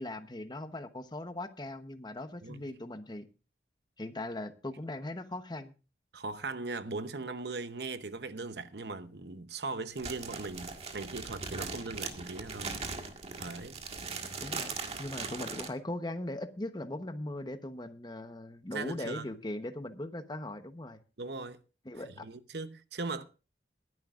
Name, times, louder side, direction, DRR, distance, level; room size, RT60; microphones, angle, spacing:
voice 1, 0.0-3.3 4.0-5.7 14.4-14.7 15.0-21.0 21.8-22.2, left 1 dB, 25° left, 1.0 m, -39 dB
voice 2, 6.1-12.8 13.4-13.8 18.7-19.3 21.2-21.6 22.0-23.2, right 3 dB, 65° right, 0.9 m, -39 dB
sound 1, 10.0-15.7, right 4 dB, 35° right, 1.7 m, -39 dB
21.5 x 11.0 x 2.5 m
head